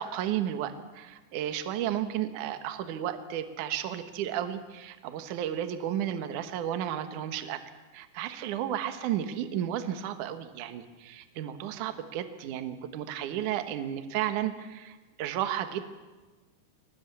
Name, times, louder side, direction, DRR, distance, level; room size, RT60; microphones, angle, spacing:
voice 1, 0.0-7.6 7.9-15.8, right 11 dB, 60° right, 9 dB, 2.3 m, -33 dB
24.0 x 18.5 x 8.5 m, 1.2 s
omnidirectional pair, 5.0 m